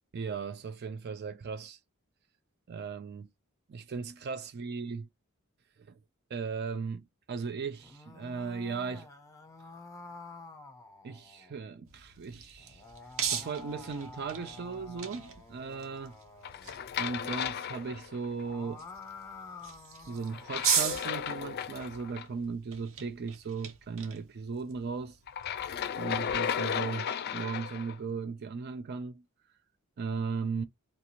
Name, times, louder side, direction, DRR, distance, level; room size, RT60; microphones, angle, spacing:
voice 1, 0.1-1.8 2.7-3.3 3.7-5.0 5.8-6.0 6.3-9.1 11.0-12.8 13.3-16.2 17.0-18.9 20.1-25.2 26.0-29.2 30.0-30.6, right 5 dB, 50° right, 0.4 m, -37 dB
sound 1, 7.7-11.6 12.6-16.8 18.2-20.7, left 3 dB, 15° left, 0.8 m, -49 dB
sound 2, 11.9-26.3, right 7 dB, 70° right, 1.0 m, -39 dB
sound 3, 16.4-18.4 20.3-22.2 25.3-28.0, left 8 dB, 50° left, 0.4 m, -34 dB
3.5 x 2.5 x 2.8 m
head